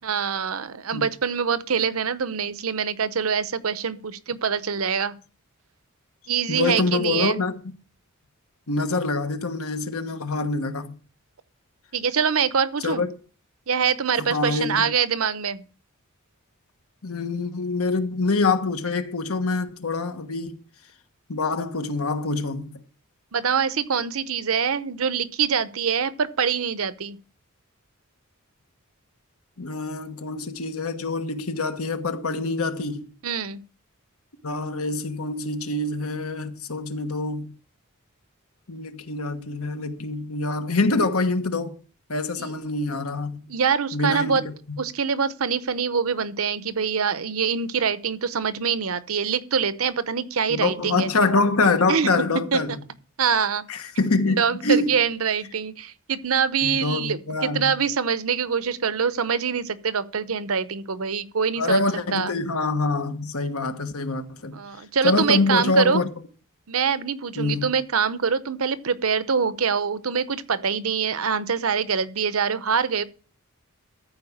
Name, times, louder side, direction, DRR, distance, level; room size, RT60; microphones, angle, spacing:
voice 1, 0.0-5.1 6.3-7.4 11.9-13.1 13.7-15.6 23.3-27.2 33.2-33.6 42.4-42.5 43.5-44.4 44.8-51.1 51.9-52.1 52.5-52.6 53.2-53.6 54.3-61.8 62.1-62.3 64.5-66.0 66.7-73.0, right 6 dB, 75° right, 0.8 m, -24 dB
voice 2, 6.5-7.5 8.7-11.0 12.8-13.1 14.2-14.9 17.0-20.6 21.3-22.8 29.6-33.1 34.4-37.5 38.7-41.7 42.1-43.5 43.9-44.8 50.5-52.8 53.7-55.0 56.6-57.8 61.6-64.6 65.0-66.1 67.4-67.7, left 3 dB, 85° left, 1.3 m, -25 dB
14.0 x 4.7 x 7.3 m
head